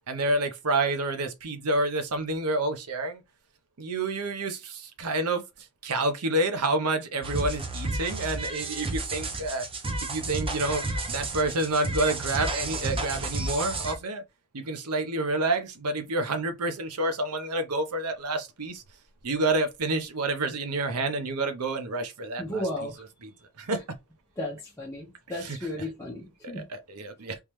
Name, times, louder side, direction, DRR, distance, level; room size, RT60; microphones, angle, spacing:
voice 1, 0.1-3.2 3.8-5.4 5.8-9.6 10.0-10.8 11.1-14.2 14.5-18.8 19.2-23.3 23.6-23.8 25.3-25.9 26.4-27.4, right 2 dB, 85° right, 0.8 m, -29 dB
sound 1, 7.2-13.9, right 2 dB, 25° right, 0.7 m, -32 dB
voice 2, 22.4-23.0 24.4-26.7, left 1 dB, 15° left, 1.0 m, -34 dB
3.5 x 3.1 x 3.1 m
head